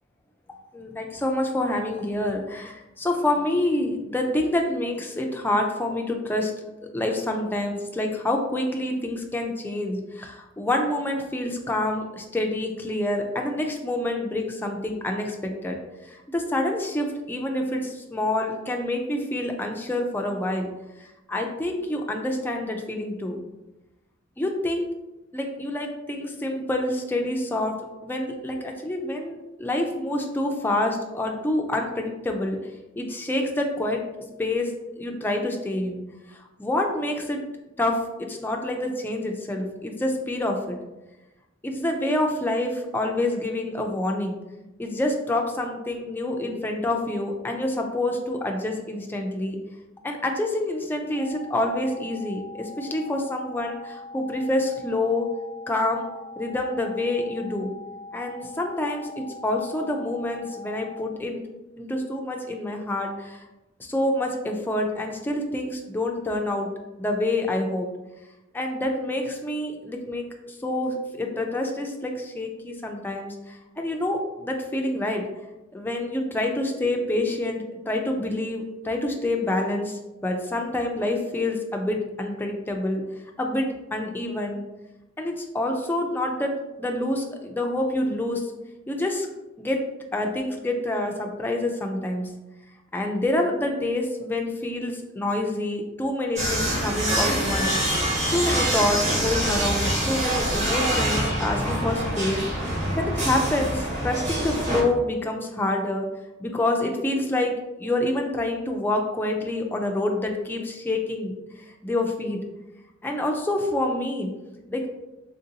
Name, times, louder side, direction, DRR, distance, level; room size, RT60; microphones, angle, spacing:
voice 1, 0.7-6.5 6.9-15.8 16.0-20.7 21.3-23.4 24.4-24.9 25.3-27.7 28.0-32.6 33.0-34.0 34.4-36.0 36.6-37.4 37.8-40.8 41.6-44.3 44.8-49.6 50.0-55.3 55.7-56.1 56.4-57.7 58.1-61.4 61.8-63.4 63.8-66.7 67.0-67.9 68.5-75.2 75.7-83.0 83.4-84.6 85.2-86.5 86.8-88.4 88.9-89.3 89.6-89.8 90.1-92.3 92.9-97.8 98.3-102.4 103.0-106.1 106.4-107.5 107.8-111.3 111.8-112.4 113.0-114.3 114.7-114.9, left 1 dB, 10° left, 2 dB, 0.3 m, -27 dB
sound 1, 51.1-61.1, left 2 dB, 60° right, 0.7 m, -42 dB
sound 2, 96.4-104.8, right 1 dB, 35° right, 1.1 m, -25 dB
3.6 x 2.5 x 2.7 m, 1.0 s
head